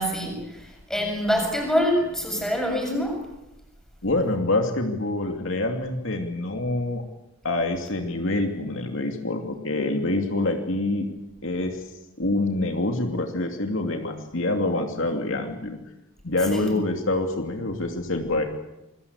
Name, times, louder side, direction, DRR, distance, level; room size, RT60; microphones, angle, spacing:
voice 1, 0.0-3.3 16.5-16.7, equal, ahead, 1 dB, 7.3 m, -25 dB
voice 2, 4.0-7.0 7.4-11.1 11.4-11.8 12.2-15.8 16.2-18.4, left 2 dB, 60° left, 4 dB, 2.6 m, -26 dB
27.5 x 23.0 x 8.2 m, 0.92 s
head